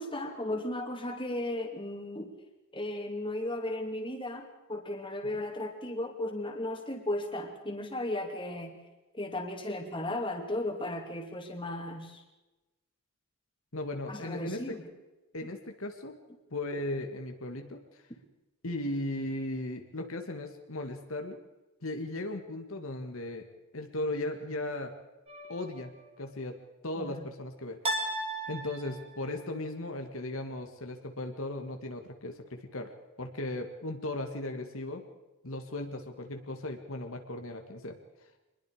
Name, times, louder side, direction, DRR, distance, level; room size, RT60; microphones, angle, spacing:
voice 1, 0.0-2.3 2.7-8.7 9.1-12.2 14.1-14.8 15.4-15.5 27.0-27.2, left 1 dB, 25° left, 3 dB, 2.8 m, -35 dB
voice 2, 13.7-14.6 15.3-16.1 16.5-18.0 18.6-21.4 21.8-23.5 23.7-24.9 25.5-25.9 26.2-26.6 26.8-28.0 28.5-32.9 33.2-35.0 35.4-38.0, left 1 dB, 70° left, 5 dB, 2.0 m, -37 dB
sound 1, 25.3-26.0 27.8-29.3, right 1 dB, 30° right, 3.0 m, -36 dB
25.0 x 21.0 x 5.0 m, 1.1 s
head